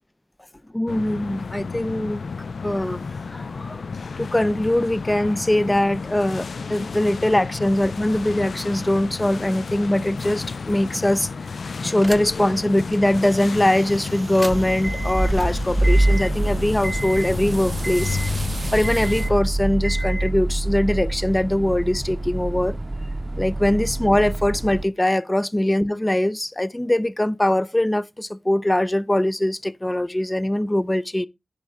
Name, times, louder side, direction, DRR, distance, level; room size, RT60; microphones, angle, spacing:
voice 1, 0.7-2.2 2.6-3.0 3.3-3.8 4.2-11.3 11.8-18.2 18.7-22.8 23.4-31.3, left 1 dB, 15° left, 0.5 m, -22 dB
sound 1, 0.9-19.4, left 4 dB, 70° left, 0.4 m, -32 dB
sound 2, 12.0-12.5 12.9-13.0 14.2-24.8, right 1 dB, 10° right, 0.8 m, -25 dB
sound 3, 13.2-19.3, right 3 dB, 35° right, 0.6 m, -40 dB
10.5 x 4.3 x 4.9 m
wide cardioid pair, 95°, 0 cm